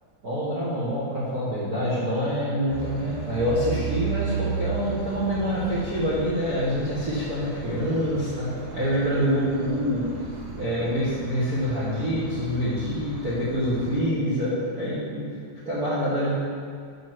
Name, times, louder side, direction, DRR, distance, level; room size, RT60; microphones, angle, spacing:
voice 1, 0.2-10.0 10.6-15.3 15.6-16.3, equal, 60° right, -9 dB, 0.9 m, -26 dB
sound 1, 2.7-14.0, right 5 dB, 80° right, 2.4 m, -35 dB
5.6 x 5.4 x 6.1 m, 2.2 s
omnidirectional pair, 3.5 m